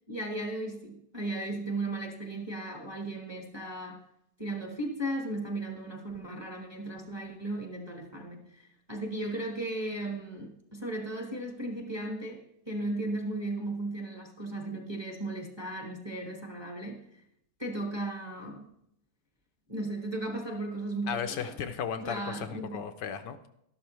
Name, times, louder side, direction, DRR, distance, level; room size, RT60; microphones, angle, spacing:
voice 1, 0.1-4.0 4.4-8.6 8.9-17.0 17.6-18.7 19.7-21.6 22.0-22.8, right 2 dB, 15° right, 1.1 m, -36 dB
voice 2, 21.1-23.5, left 7 dB, 75° left, 1.3 m, -35 dB
12.5 x 11.5 x 3.2 m
omnidirectional pair, 2.0 m